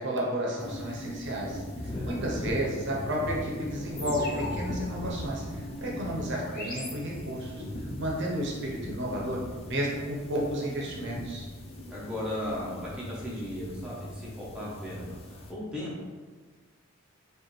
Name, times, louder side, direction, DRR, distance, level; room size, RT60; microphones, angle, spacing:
voice 1, 0.0-9.4 9.7-11.5, equal, 50° right, -3 dB, 0.7 m, -32 dB
sound 1, 0.6-15.5, left 1 dB, 25° left, 0.4 m, -39 dB
sound 2, 4.0-7.6, left 2 dB, 40° left, 0.8 m, -42 dB
voice 2, 11.9-16.1, left 1 dB, 5° right, -7 dB, 0.7 m, -36 dB
4.8 x 2.5 x 3.1 m, 1.4 s
head